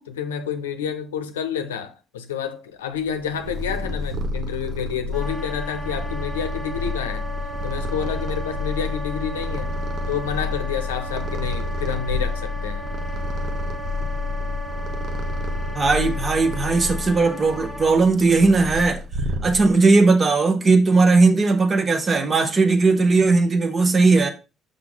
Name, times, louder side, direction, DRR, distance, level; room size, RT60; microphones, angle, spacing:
voice 1, 0.1-7.3 7.6-9.7 10.1-12.9, left 7 dB, 85° left, 0.6 m, -29 dB
Purr, 3.1-19.9, left 2 dB, 55° right, 1.0 m, -29 dB
Wind instrument woodwind instrument, 5.1-18.0, equal, 5° right, 1.5 m, -36 dB
voice 2, 15.7-19.0 19.4-24.3, right 3 dB, 35° right, 1.1 m, -18 dB
5.8 x 5.1 x 3.9 m
hypercardioid pair, 55°, 0 cm